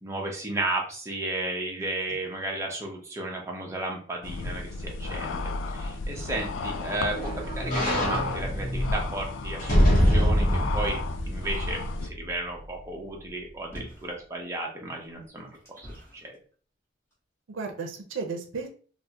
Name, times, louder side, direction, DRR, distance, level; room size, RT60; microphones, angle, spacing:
voice 1, 0.0-11.0 11.3-15.5 15.8-16.4, right 2 dB, 15° right, -1 dB, 0.6 m, -34 dB
voice 2, 1.8-2.2 17.5-18.7, right 4 dB, 80° right, 3 dB, 0.5 m, -35 dB
sound 1, 4.2-12.1, left 3 dB, 75° left, 0.3 m, -33 dB
sound 2, 6.0-12.3 12.8-12.9, equal, 45° left, 0.8 m, -26 dB
sound 3, 13.7-14.2 15.0-16.3 17.1-17.2, equal, 15° left, 0.9 m, -45 dB
3.4 x 2.1 x 2.7 m, 0.42 s
head